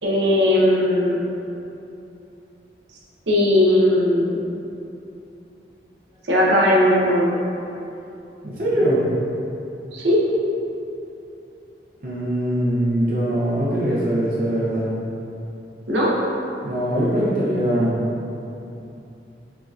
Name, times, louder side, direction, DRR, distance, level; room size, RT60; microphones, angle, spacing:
voice 1, 0.0-1.2 3.3-4.4 6.3-7.4 9.9-10.2 15.9-16.1, left 1 dB, 85° right, -5 dB, 0.8 m, -18 dB
voice 2, 8.4-9.0 12.0-14.9 16.6-18.1, right 1 dB, 50° right, -7 dB, 0.6 m, -22 dB
5.3 x 2.8 x 2.4 m, 2.8 s
head